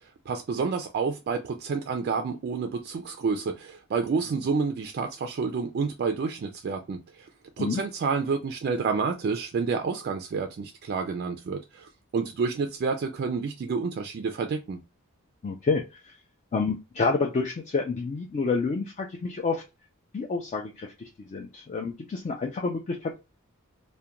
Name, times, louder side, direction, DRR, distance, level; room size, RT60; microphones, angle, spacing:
voice 1, 0.3-7.3 7.6-14.8, right 5 dB, 45° right, 0.3 m, -29 dB
voice 2, 15.4-16.2 16.5-19.6 20.1-23.2, left 4 dB, 35° left, 0.3 m, -29 dB
2.3 x 2.1 x 2.8 m
head